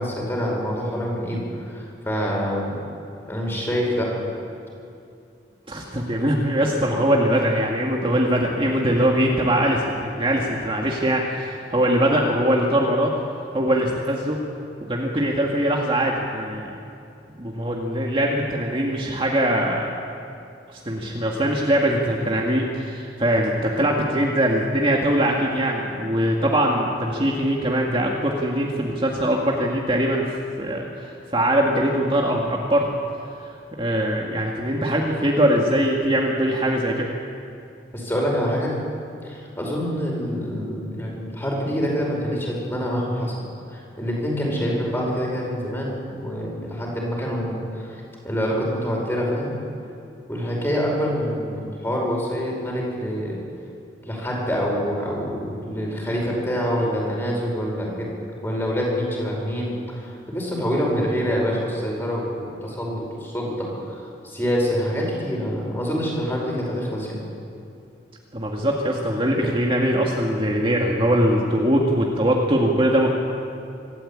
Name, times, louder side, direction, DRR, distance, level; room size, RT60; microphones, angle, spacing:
voice 1, 0.0-2.8 3.3-4.1 37.9-38.8 39.2-43.3 43.7-49.5 50.3-53.4 54.0-58.1 58.4-67.2, equal, 15° left, -2 dB, 5.3 m, -26 dB
voice 2, 5.7-13.1 13.5-14.4 14.9-16.7 17.4-19.9 20.7-30.3 30.6-32.9 33.8-37.1 68.3-73.1, right 1 dB, 30° right, -1 dB, 1.9 m, -22 dB
25.5 x 13.5 x 8.8 m, 2.6 s
head